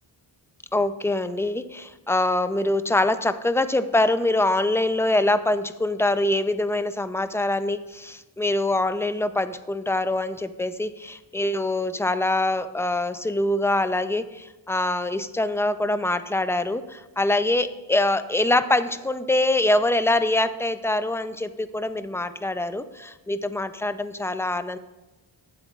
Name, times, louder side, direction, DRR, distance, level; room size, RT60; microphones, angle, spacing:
voice 1, 0.7-24.8, left 2 dB, 5° left, 11 dB, 0.5 m, -24 dB
21.0 x 7.8 x 2.5 m, 1.1 s
cardioid pair, 55°, 47 cm